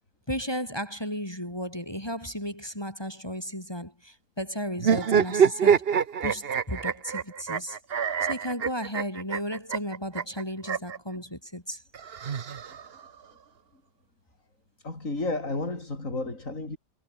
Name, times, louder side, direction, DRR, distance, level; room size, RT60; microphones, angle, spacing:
voice 1, 0.3-5.8 6.2-7.8 8.2-11.8, equal, 15° left, 4.9 m, -34 dB
sound 1, 4.8-11.0 11.9-13.1, right 7 dB, 45° right, 1.0 m, -25 dB
voice 2, 14.8-16.8, left 2 dB, 50° left, 5.4 m, -32 dB
omnidirectional pair, 1.8 m